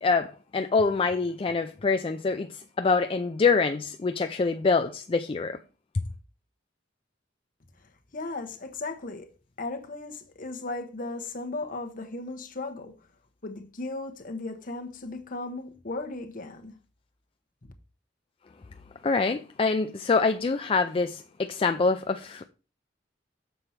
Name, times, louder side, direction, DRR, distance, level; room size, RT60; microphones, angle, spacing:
voice 1, 0.0-5.6 19.0-22.4, left 4 dB, 30° left, 0.4 m, -25 dB
voice 2, 8.1-9.3 9.6-12.9 13.4-16.7, left 2 dB, 50° left, 1.1 m, -36 dB
6.9 x 4.5 x 5.7 m
head